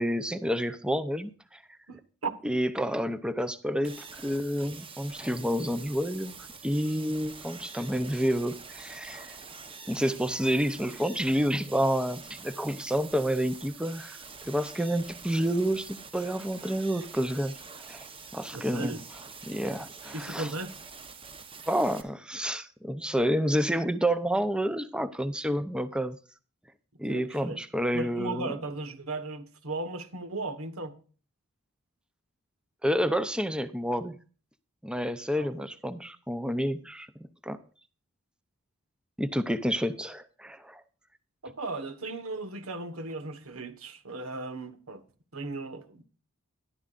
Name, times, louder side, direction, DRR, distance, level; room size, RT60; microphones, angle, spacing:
voice 1, 0.0-1.6 2.4-6.4 6.6-9.4 9.9-14.2 14.4-17.6 17.9-18.1 18.3-19.0 19.5-20.5 21.7-26.2 27.0-28.5 32.8-34.1 34.8-37.1 37.4-37.6 39.2-40.8, equal, 5° right, 0.6 m, -29 dB
voice 2, 1.9-2.3 18.5-19.0 20.1-20.8 27.1-27.6 27.9-30.9 35.3-35.7 41.4-45.0 45.3-46.0, right 2 dB, 80° right, 1.4 m, -36 dB
sound 1, 3.8-22.0, right 5 dB, 25° right, 1.0 m, -46 dB
13.5 x 11.5 x 2.5 m
head